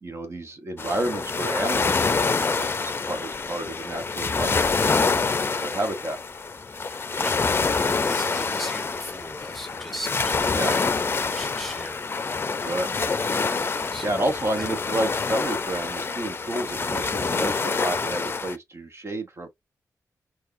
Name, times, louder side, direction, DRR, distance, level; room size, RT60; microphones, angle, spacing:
voice 1, 0.0-4.7 5.0-5.3 5.6-6.2 10.5-10.7 12.6-12.9 14.0-19.5, right 1 dB, 45° right, 1.2 m, -30 dB
sound 1, 0.8-18.6, left 4 dB, 35° left, 0.5 m, -26 dB
voice 2, 6.9-12.9 13.9-14.2 14.6-14.7, equal, 5° left, 1.2 m, -39 dB
4.5 x 4.4 x 2.7 m
wide cardioid pair, 130°, 6 cm